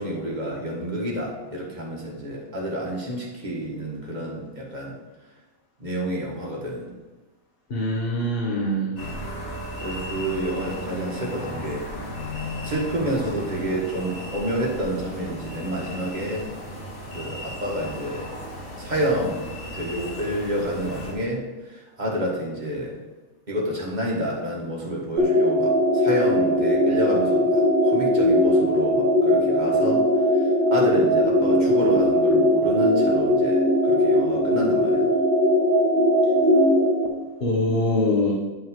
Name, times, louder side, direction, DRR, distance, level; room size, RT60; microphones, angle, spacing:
voice 1, 0.0-4.9 5.8-6.9 9.8-11.9 12.6-16.5 17.1-18.3 18.8-19.5 19.7-21.4 21.7-23.0 23.5-30.1 30.7-35.1, equal, 35° right, -3 dB, 1.6 m, -29 dB
voice 2, 7.7-8.9 37.4-38.3, left 1 dB, 45° left, -3 dB, 1.5 m, -23 dB
sound 1, 9.0-21.1, equal, 75° left, 1.9 m, -35 dB
sound 2, 25.2-37.1, equal, 55° right, 1.1 m, -20 dB
9.9 x 5.6 x 3.7 m, 1.2 s
omnidirectional pair, 1.5 m